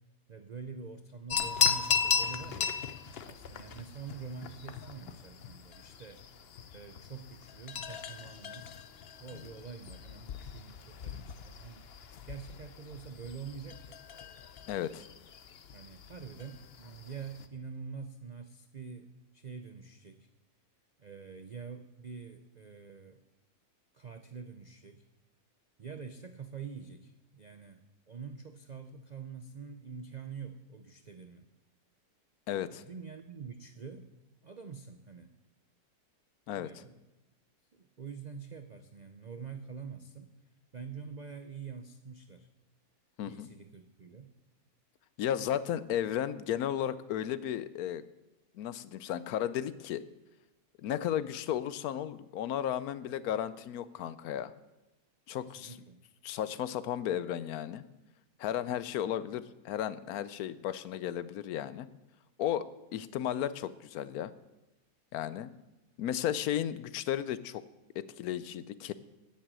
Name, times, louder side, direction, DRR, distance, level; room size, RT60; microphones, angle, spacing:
voice 1, 0.3-2.7 3.2-6.2 6.7-8.7 9.2-14.0 15.7-20.3 21.0-23.2 23.9-25.1 25.8-31.5 32.7-34.1 34.4-35.3 36.6-37.0 37.7-40.3 40.7-42.5 43.2-44.3 55.4-56.0, right 6 dB, 60° right, 8 dB, 0.4 m, -46 dB
sound 1, 1.3-17.5, left 7 dB, 50° left, 0.8 m, -37 dB
voice 2, 14.7-15.1 32.5-32.8 36.5-36.8 43.2-43.5 45.2-48.0 48.5-50.0 50.8-54.5 55.3-55.8 56.2-57.8 58.4-61.9 62.4-64.3 65.1-65.5 66.0-67.6 67.9-68.9, left 10 dB, 75° left, 16 dB, 1.1 m, -34 dB
10.0 x 7.5 x 8.9 m, 0.99 s
omnidirectional pair, 1.6 m